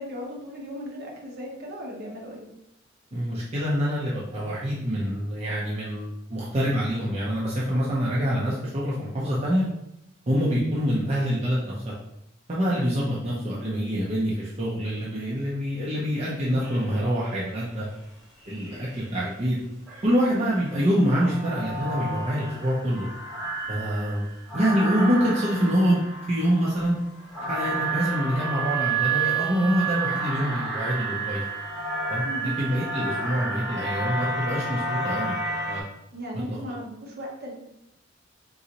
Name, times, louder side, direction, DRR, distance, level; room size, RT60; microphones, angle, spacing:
voice 1, 0.0-2.4 32.2-32.5 36.1-37.5, equal, 55° right, -2 dB, 1.1 m, -36 dB
voice 2, 3.1-9.6 10.3-11.7 12.5-17.9 18.5-19.6 20.0-23.1 23.7-24.3 24.5-26.0 26.3-26.9 27.5-31.4 32.1-32.2 32.6-35.4 35.6-35.8 36.5-36.6, equal, 35° right, -6 dB, 0.7 m, -25 dB
sound 1, 16.6-17.4 18.4-19.1 19.9-35.8, right 3 dB, ahead, 1.4 m, -31 dB
3.9 x 3.9 x 2.9 m, 0.83 s
head